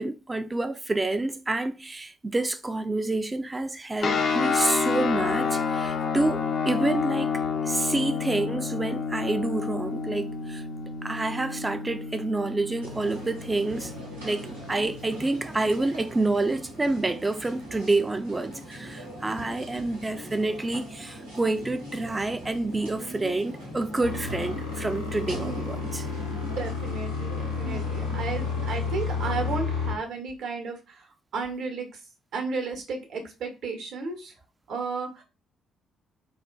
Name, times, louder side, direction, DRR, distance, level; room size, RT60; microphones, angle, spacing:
voice 1, 0.0-10.6 11.0-13.9 14.2-26.1, right 2 dB, 20° right, 0.4 m, -28 dB
sound 1, 4.0-15.2, left 5 dB, 50° left, 0.5 m, -29 dB
sound 2, 12.8-29.6, equal, 85° right, 0.9 m, -41 dB
sound 3, 24.0-29.9, left 5 dB, 80° left, 0.9 m, -31 dB
voice 2, 25.4-25.9 26.4-31.0 31.3-31.9 32.3-34.3 34.7-35.2, right 4 dB, 55° right, 0.9 m, -33 dB
4.2 x 2.4 x 2.2 m
figure-of-eight pair, 45°, 0 cm